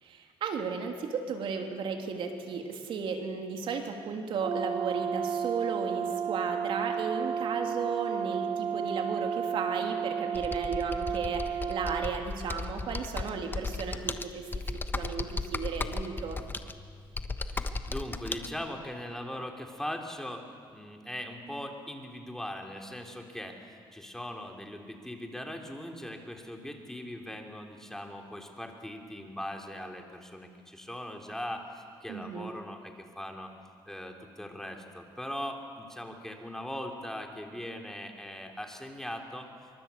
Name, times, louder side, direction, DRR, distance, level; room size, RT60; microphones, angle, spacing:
voice 1, 0.0-14.4 14.9-16.4 32.1-32.5, right 5 dB, 70° right, 3 dB, 2.9 m, -35 dB
Brass instrument, 4.4-12.1, right 7 dB, 50° right, 1.1 m, -32 dB
Computer keyboard, 10.3-18.5, left 3 dB, 20° left, 1.2 m, -36 dB
voice 2, 17.5-33.5 33.9-39.5, left 1 dB, 5° left, 2 dB, 3.1 m, -40 dB
24.5 x 24.0 x 8.3 m, 2.1 s
cardioid pair, 105°, 9 cm